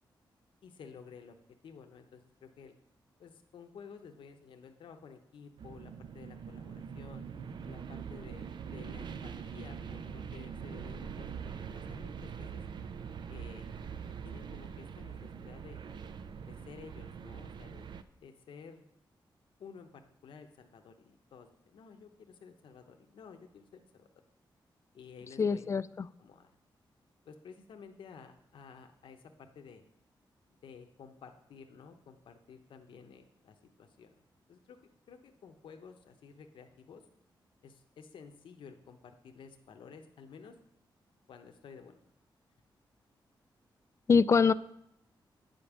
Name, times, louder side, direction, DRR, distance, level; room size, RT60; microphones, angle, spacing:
voice 1, 0.6-1.3 1.6-2.8 3.2-7.2 7.7-11.3 11.7-12.6 13.3-13.7 14.2-15.8 16.5-17.9 18.2-18.9 19.6-19.9 20.2-24.1 24.9-25.7 26.2-26.5 27.3-29.8 30.6-34.2 34.5-34.8 35.1-37.0 37.6-40.6 41.3-42.1, left 6 dB, 85° left, 5 dB, 0.8 m, -53 dB
sound 1, 5.6-18.0, right 7 dB, 65° right, 0.5 m, -43 dB
voice 2, 25.4-26.1 44.1-44.5, left 5 dB, 35° left, 16 dB, 0.3 m, -24 dB
9.1 x 5.2 x 7.2 m, 0.75 s
wide cardioid pair, 120°, 8 cm